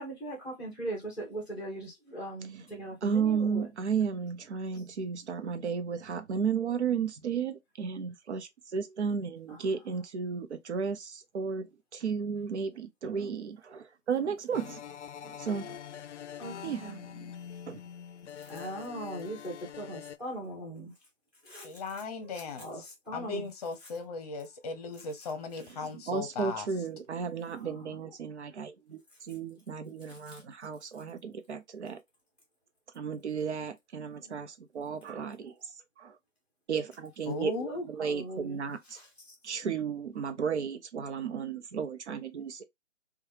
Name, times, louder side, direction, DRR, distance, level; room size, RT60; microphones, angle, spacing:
voice 1, 0.0-3.7 9.5-9.7 16.4-17.1 18.3-20.9 21.4-21.7 22.2-23.5 27.6-28.1 30.1-30.4 34.0-34.4 37.7-38.6 38.9-39.3, right 1 dB, ahead, 0.7 m, -40 dB
voice 2, 3.0-14.8 15.2-15.8 16.6-16.8 17.2-17.3 17.7-17.8 25.7-32.0 32.9-36.2 36.7-39.0 39.4-42.6, right 6 dB, 65° right, 0.8 m, -34 dB
sound 1, 14.5-20.2, left 9 dB, 65° left, 0.5 m, -44 dB
voice 3, 21.6-22.7 23.1-26.7 37.3-37.7, left 4 dB, 30° left, 0.8 m, -37 dB
3.1 x 2.3 x 2.7 m
hypercardioid pair, 145°, 38 cm